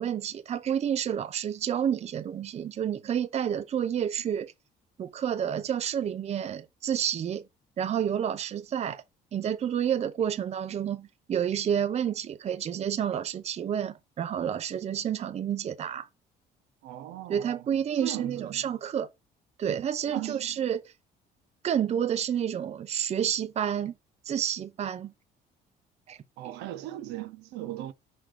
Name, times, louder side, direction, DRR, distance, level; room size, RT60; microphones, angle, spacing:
voice 1, 0.0-4.5 5.0-7.4 7.8-9.0 9.3-16.1 17.3-19.1 19.6-20.9 21.6-23.9 24.3-25.1 26.1-26.2 26.4-26.5, right 9 dB, 40° right, 0.6 m, -29 dB
voice 2, 16.8-17.6 18.0-18.6 20.1-20.5 26.4-27.9, right 14 dB, 85° right, 0.9 m, -38 dB
5.9 x 3.3 x 4.9 m
cardioid pair, 110°, 17 cm